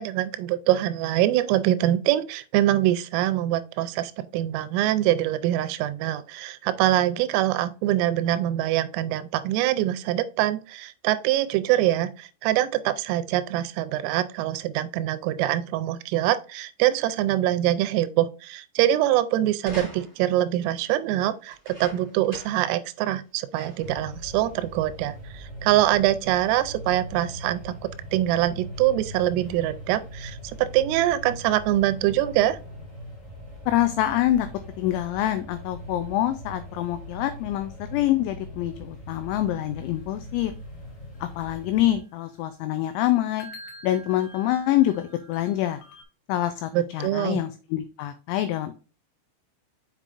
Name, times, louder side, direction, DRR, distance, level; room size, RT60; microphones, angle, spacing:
voice 1, 0.0-27.8 28.1-32.6 46.7-47.4, right 13 dB, 85° right, 3.2 m, -24 dB
sound 1, 19.6-20.4 21.5-22.7 23.1-23.2 23.5-24.0 24.8-24.9, right 1 dB, 15° right, 1.7 m, -42 dB
sound 2, 23.8-42.0, equal, 25° left, 0.9 m, -41 dB
voice 2, 33.7-34.5 34.8-40.5 41.2-43.5 43.8-45.8 46.3-48.7, left 13 dB, 90° left, 2.6 m, -25 dB
sound 3, 39.4-46.0, equal, 70° left, 2.8 m, -49 dB
7.4 x 5.2 x 2.5 m
omnidirectional pair, 5.7 m